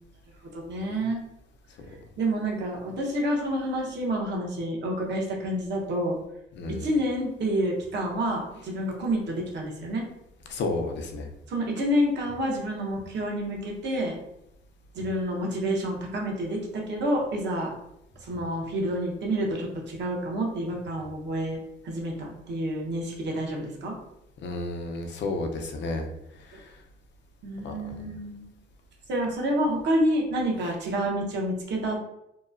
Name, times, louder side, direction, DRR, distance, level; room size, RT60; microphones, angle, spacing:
voice 1, 0.4-1.2 2.2-6.2 6.7-10.1 11.5-14.2 14.9-17.7 18.2-21.6 21.8-23.9 27.4-28.5 29.1-32.0, equal, 65° right, -1 dB, 0.9 m, -28 dB
voice 2, 6.6-6.9 10.5-11.3 24.4-26.1 26.5-26.7 27.6-28.0, left 2 dB, 65° left, 4 dB, 0.5 m, -32 dB
2.9 x 2.2 x 2.4 m, 0.83 s
cardioid pair, 90°, 20 cm